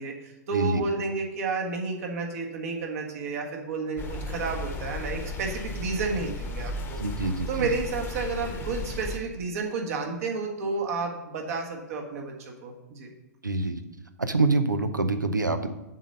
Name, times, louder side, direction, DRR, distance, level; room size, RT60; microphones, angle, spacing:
voice 1, 0.0-7.0 7.5-13.1, right 4 dB, 50° right, 2 dB, 1.5 m, -31 dB
voice 2, 0.5-0.8 7.0-7.7 13.4-13.8 14.2-15.7, right 3 dB, 90° right, 10 dB, 0.6 m, -26 dB
sound 1, 4.0-9.2, left 2 dB, 20° left, 1.0 m, -35 dB
7.3 x 4.2 x 6.5 m, 0.99 s
figure-of-eight pair, 110°, 10 cm